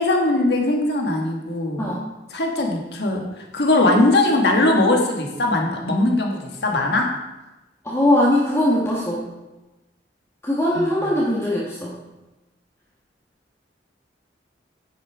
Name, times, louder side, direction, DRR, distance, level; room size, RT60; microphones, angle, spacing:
voice 1, 0.0-1.9 2.3-7.1 10.7-11.1, left 2 dB, 65° left, 1 dB, 1.7 m, -20 dB
voice 2, 7.8-9.3 10.4-11.9, left 1 dB, 15° left, -7 dB, 1.5 m, -20 dB
9.7 x 6.4 x 5.0 m, 1.0 s
head